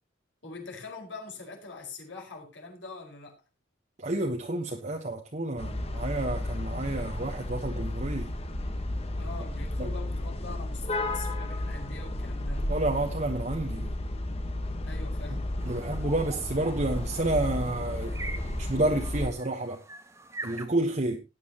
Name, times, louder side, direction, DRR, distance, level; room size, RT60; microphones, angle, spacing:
voice 1, 0.4-3.4 9.2-12.7 14.8-15.4, left 4 dB, 75° left, 5.1 m, -43 dB
voice 2, 4.0-8.3 9.8-9.9 12.7-13.9 15.6-19.8 20.4-21.2, right 2 dB, 40° right, 1.1 m, -30 dB
sound 1, 5.6-19.3, left 1 dB, 30° left, 1.3 m, -33 dB
sound 2, 15.6-20.7, right 2 dB, 15° right, 1.0 m, -44 dB
17.5 x 9.4 x 2.9 m
head